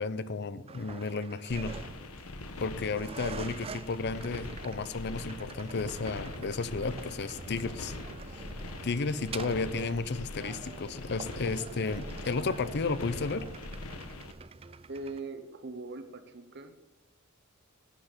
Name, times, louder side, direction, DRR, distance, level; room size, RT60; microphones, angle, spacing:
voice 1, 0.0-1.7 2.6-8.0 8.3-8.4 8.8-13.5, left 4 dB, 50° left, 14 dB, 0.6 m, -33 dB
sound 1, 0.7-15.2, right 5 dB, 25° right, 0.4 m, -46 dB
sound 2, 1.5-14.3, left 2 dB, 85° left, 1.2 m, -42 dB
voice 2, 14.9-16.8, right 3 dB, 55° right, 9 dB, 1.1 m, -41 dB
11.5 x 8.0 x 5.2 m, 1.2 s
head